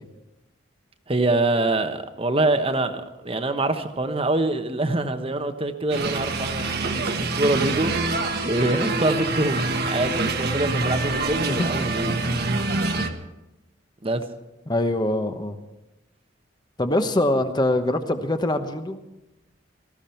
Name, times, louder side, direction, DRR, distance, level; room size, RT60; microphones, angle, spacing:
voice 1, 1.1-12.1 14.0-14.2, right 2 dB, 30° right, 8 dB, 1.0 m, -25 dB
sound 1, 5.9-13.1, right 3 dB, 55° right, 1.3 m, -26 dB
voice 2, 11.5-11.9 14.7-15.6 16.8-19.0, left 1 dB, 20° left, 8 dB, 1.0 m, -23 dB
18.5 x 14.5 x 4.5 m, 0.97 s
head